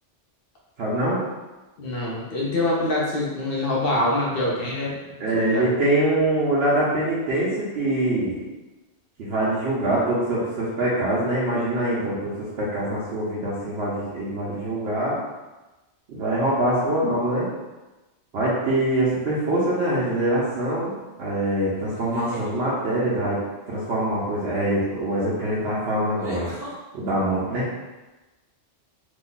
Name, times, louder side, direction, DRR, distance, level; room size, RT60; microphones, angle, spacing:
voice 1, 0.8-1.2 5.2-8.4 9.2-15.2 16.1-17.5 18.3-20.9 21.2-23.4 23.7-26.5 26.9-27.7, right 1 dB, 65° right, -8 dB, 0.9 m, -24 dB
voice 2, 1.8-5.6, left 1 dB, 55° left, -4 dB, 0.9 m, -25 dB
sound 1, 19.3-19.8 21.9-22.5 24.8-24.9 26.2-26.8, equal, 20° right, 0.8 m, -38 dB
2.9 x 2.2 x 3.9 m, 1.1 s
omnidirectional pair, 1.2 m